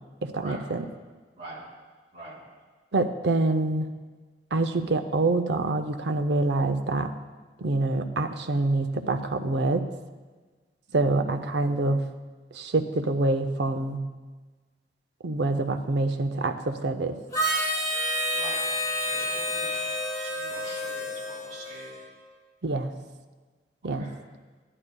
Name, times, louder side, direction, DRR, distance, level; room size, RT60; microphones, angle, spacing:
voice 1, 0.2-0.8 2.9-3.9 4.5-7.1 7.6-9.8 10.9-12.0 12.5-14.0 15.2-17.2 22.6-22.9 23.8-24.0, right 2 dB, 75° right, 8 dB, 0.5 m, -26 dB
voice 2, 10.9-11.9 18.3-18.6 19.0-19.8 20.2-21.9 23.9-24.2, right 1 dB, 35° right, -6 dB, 3.0 m, -44 dB
Harmonica, 17.3-22.1, equal, 20° left, 1.4 m, -29 dB
12.0 x 11.0 x 2.2 m, 1.4 s
head